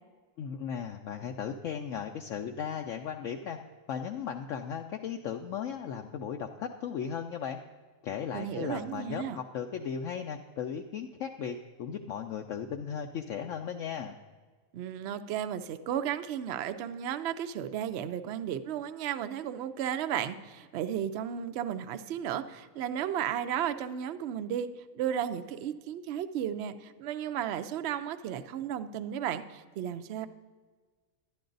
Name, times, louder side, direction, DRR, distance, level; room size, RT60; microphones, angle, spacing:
voice 1, 0.4-3.6 3.9-7.6 8.0-14.2, left 7 dB, 70° left, 4 dB, 0.9 m, -36 dB
voice 2, 8.3-9.4 14.7-24.7 24.9-30.3, right 9 dB, 65° right, 10 dB, 0.7 m, -34 dB
11.0 x 10.5 x 3.9 m, 1.4 s
omnidirectional pair, 1.5 m